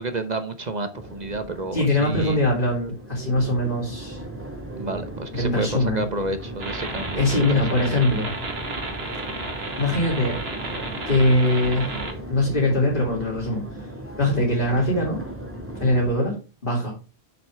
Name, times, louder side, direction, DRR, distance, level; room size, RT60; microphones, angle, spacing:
voice 1, 0.0-2.4 4.7-8.0, right 2 dB, 45° right, 9 dB, 1.1 m, -30 dB
Crowd, 0.9-16.1, right 1 dB, 10° right, 2.3 m, -37 dB
voice 2, 1.7-4.2 5.3-6.0 7.2-8.3 9.3-9.4 9.8-10.4 11.0-11.9 12.3-13.6 14.2-15.2 15.8-16.4 16.6-16.9, left 1 dB, 55° left, -4 dB, 3.2 m, -22 dB
sound 1, 6.6-12.1, right 2 dB, 75° right, 2.1 m, -32 dB
8.1 x 7.7 x 3.5 m, 0.31 s
omnidirectional pair, 1.1 m